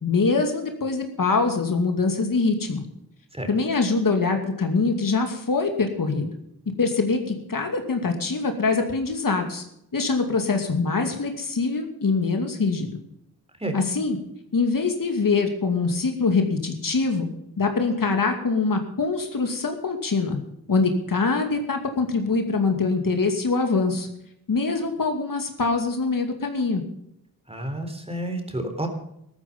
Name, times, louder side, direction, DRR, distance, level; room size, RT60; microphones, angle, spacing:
voice 1, 0.0-2.8 3.5-6.3 6.8-9.6 9.9-13.0 13.7-14.2 14.5-17.3 17.6-20.4 20.7-24.1 24.5-26.8, left 4 dB, 60° left, 5 dB, 2.5 m, -24 dB
voice 2, 27.5-28.9, right 1 dB, 15° right, 5 dB, 3.8 m, -30 dB
14.0 x 13.5 x 5.4 m, 0.76 s
cardioid pair, 70°, 37 cm